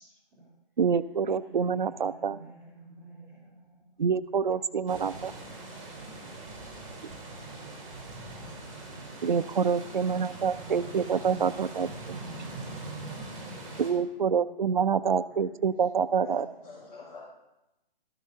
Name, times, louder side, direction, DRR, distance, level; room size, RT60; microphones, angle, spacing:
voice 1, 0.0-0.5 1.4-4.0 4.4-5.1 5.6-6.5 9.8-14.5 14.8-15.7 16.2-16.4, right 3 dB, 10° right, -14 dB, 2.7 m, -52 dB
voice 2, 0.8-2.4 4.0-5.3 9.2-12.2 13.8-16.5, right 6 dB, 55° right, 15 dB, 0.4 m, -27 dB
sound 1, 4.9-13.9, right 2 dB, 30° right, 3.2 m, -42 dB
voice 3, 16.2-17.2, left 2 dB, 50° left, -7 dB, 3.8 m, -43 dB
13.5 x 12.5 x 2.7 m, 0.95 s
hypercardioid pair, 180°, 29 cm